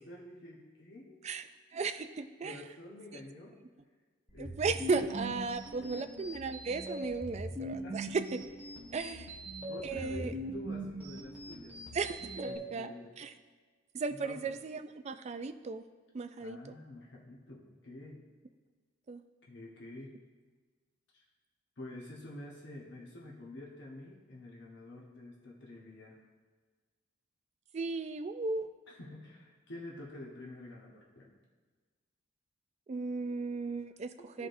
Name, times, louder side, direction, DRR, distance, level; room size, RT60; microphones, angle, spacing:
voice 1, 0.0-1.2 2.4-3.6 4.3-5.0 5.8-6.0 7.8-8.1 9.3-11.8 12.4-13.1 14.2-14.4 16.4-18.2 19.5-20.2 21.1-21.2 21.8-26.2 28.9-31.3 34.4-34.5, left 1 dB, 60° left, -3 dB, 1.1 m, -48 dB
voice 2, 1.2-2.6 4.4-8.4 8.9-9.4 9.8-10.3 11.9-13.3 13.9-15.8 16.1-16.8 19.1-19.2 27.7-28.7 32.9-34.5, right 4 dB, 35° right, 9 dB, 0.3 m, -36 dB
sound 1, 4.3-12.6, right 1 dB, 10° right, 1.6 m, -41 dB
14.0 x 4.8 x 2.6 m, 1.5 s
head